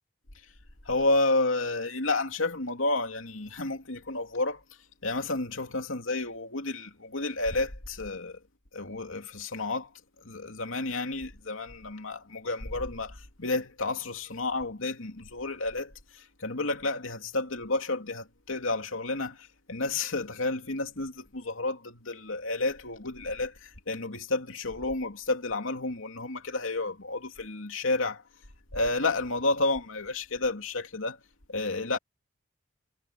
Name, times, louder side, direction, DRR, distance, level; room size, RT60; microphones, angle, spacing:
voice 1, 0.8-4.6 5.0-8.4 8.7-9.9 10.2-28.2 28.7-31.2 31.5-32.0, left 2 dB, 85° left, 2.8 m, -31 dB
head